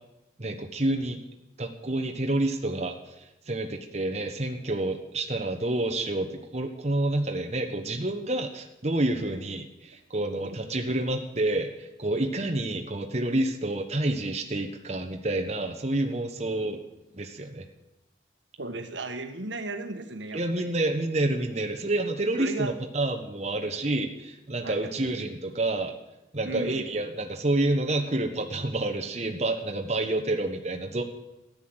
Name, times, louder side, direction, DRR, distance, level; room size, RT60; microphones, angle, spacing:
voice 1, 0.4-1.2 1.6-16.8 17.1-17.7 20.3-25.9 26.3-31.0, right 2 dB, 35° right, 4 dB, 1.2 m, -28 dB
voice 2, 18.6-20.7 22.4-22.8 24.6-24.9 26.4-26.9, right 2 dB, 85° right, 7 dB, 1.6 m, -35 dB
14.0 x 11.0 x 7.9 m, 0.94 s
head